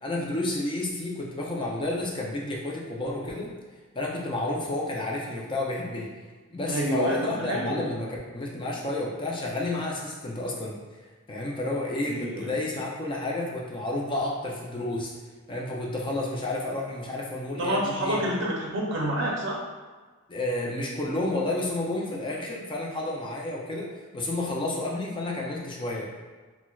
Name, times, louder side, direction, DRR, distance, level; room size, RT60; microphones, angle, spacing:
voice 1, 0.0-3.5 3.9-6.1 6.5-10.8 11.3-15.1 15.5-18.2 20.3-26.1, left 2 dB, 25° left, -3 dB, 0.4 m, -31 dB
voice 2, 6.7-7.9 12.1-12.5 17.6-19.6, right 1 dB, 65° right, -2 dB, 0.5 m, -28 dB
4.2 x 2.1 x 2.3 m, 1.4 s
head